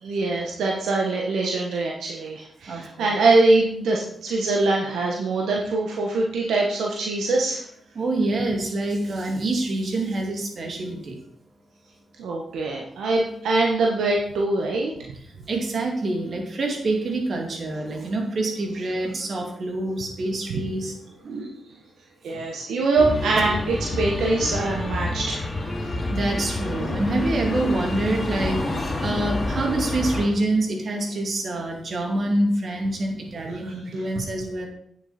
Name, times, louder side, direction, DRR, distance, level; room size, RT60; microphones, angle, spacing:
voice 1, 0.0-7.7 12.2-14.9 20.5-20.6 22.2-25.9 33.5-34.0, right 2 dB, 85° right, -1 dB, 1.3 m, -23 dB
voice 2, 2.7-3.1 7.9-11.1 15.5-20.9 21.2-21.5 26.0-28.6 29.0-34.7, right 2 dB, 60° right, 1 dB, 2.5 m, -26 dB
sound 1, 23.0-30.3, left 2 dB, 35° left, 2.5 m, -28 dB
9.0 x 7.6 x 4.3 m, 0.69 s
cardioid pair, 65°, 0 cm